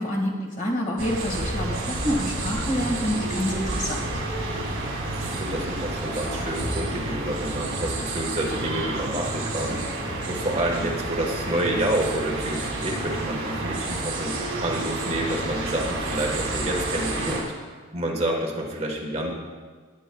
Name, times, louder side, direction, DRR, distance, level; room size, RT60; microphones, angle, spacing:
voice 1, 0.0-4.1, equal, 35° left, -1 dB, 1.8 m, -27 dB
sound 1, 1.0-17.4, right 2 dB, 75° right, 2.7 m, -30 dB
voice 2, 5.2-14.3 14.6-17.4 17.9-19.3, right 1 dB, 30° right, 0 dB, 1.3 m, -28 dB
18.5 x 8.8 x 2.3 m, 1.5 s
head